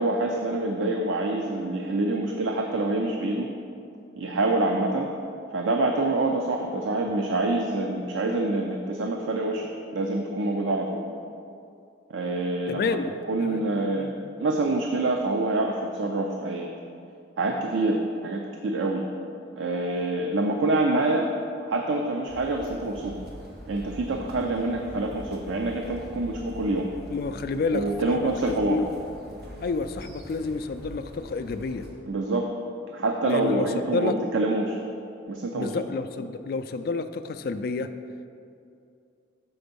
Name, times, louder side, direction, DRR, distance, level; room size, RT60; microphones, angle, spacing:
voice 1, 0.0-3.5 4.2-5.1 5.5-11.0 12.1-12.9 13.3-14.1 14.4-16.7 17.4-19.0 19.5-21.3 21.7-23.1 23.7-26.9 27.7-28.8 32.1-32.5 32.9-34.8 35.3-35.7, right 2 dB, 90° right, 2 dB, 0.5 m, -26 dB
voice 2, 12.7-13.6 13.9-14.1 27.1-28.9 29.6-31.9 33.3-34.2 35.5-37.9, left 4 dB, 50° left, 8 dB, 0.3 m, -30 dB
sound 1, 22.3-31.9, equal, 55° right, 1.2 m, -44 dB
6.9 x 4.3 x 5.3 m, 2.5 s
head